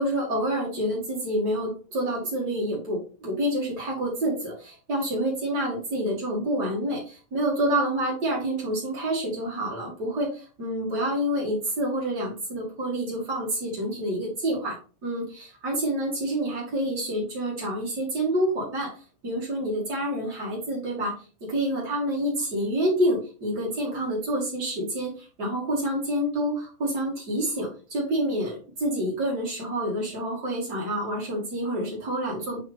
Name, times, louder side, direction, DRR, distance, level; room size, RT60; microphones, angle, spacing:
voice 1, 0.0-14.7 15.0-18.9 19.2-21.1 21.5-32.6, right 1 dB, 90° right, -5 dB, 0.9 m, -28 dB
8.2 x 4.5 x 3.4 m, 0.37 s
omnidirectional pair, 5.9 m